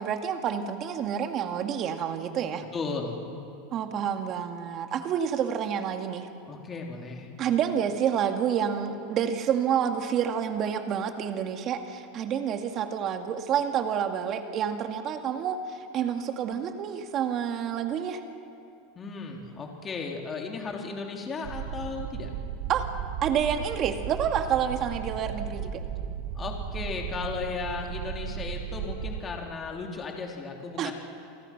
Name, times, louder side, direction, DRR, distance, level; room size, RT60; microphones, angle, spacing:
voice 1, 0.0-2.6 3.7-6.3 7.4-18.2 22.7-22.9 23.2-25.8 30.8-30.9, right 8 dB, 40° right, 5 dB, 2.1 m, -28 dB
voice 2, 2.7-3.2 6.5-7.3 18.9-22.3 26.3-30.9, left 4 dB, 25° left, 1 dB, 3.3 m, -35 dB
sound 1, 21.4-29.2, right 8 dB, 65° right, 1.4 m, -35 dB
28.5 x 19.0 x 6.0 m, 2.7 s
supercardioid pair, 125°, 0 cm